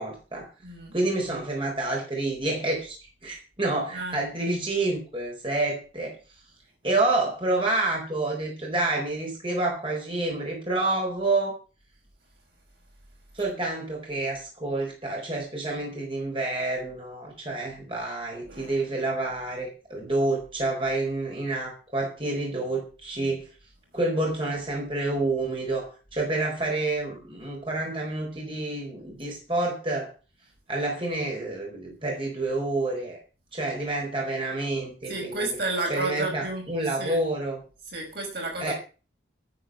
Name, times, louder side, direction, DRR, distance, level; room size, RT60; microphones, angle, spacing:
voice 1, 0.0-0.5 0.9-3.0 3.2-6.2 6.8-11.5 13.3-23.4 23.9-30.1 30.7-33.2 33.5-35.5 35.9-37.6 38.6-38.7, right 2 dB, 25° right, 0 dB, 4.6 m, -28 dB
voice 2, 0.6-1.0 3.9-4.2 18.4-18.7 35.1-36.7 37.0-37.2 37.9-38.7, right 2 dB, 55° right, 1 dB, 5.9 m, -31 dB
11.0 x 9.0 x 7.7 m, 0.35 s
head